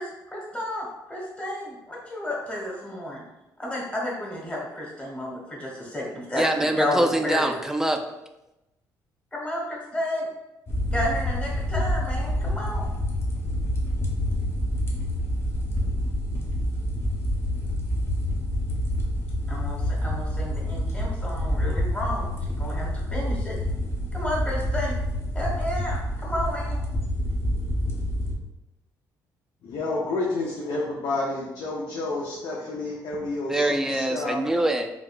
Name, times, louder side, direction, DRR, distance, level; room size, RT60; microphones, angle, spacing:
voice 1, 0.0-3.2 3.6-7.6 9.3-10.3 10.9-12.8 19.5-23.6 24.1-25.0 25.3-26.8, left 1 dB, 15° left, -3 dB, 1.2 m, -31 dB
voice 2, 6.4-8.0 33.5-34.9, right 1 dB, 5° right, 5 dB, 0.3 m, -24 dB
sound 1, 10.7-28.4, equal, 35° left, 0.7 m, -27 dB
voice 3, 29.6-34.4, left 2 dB, 65° left, -4 dB, 0.6 m, -30 dB
3.4 x 2.3 x 2.5 m, 0.93 s
cardioid pair, 85°, 8 cm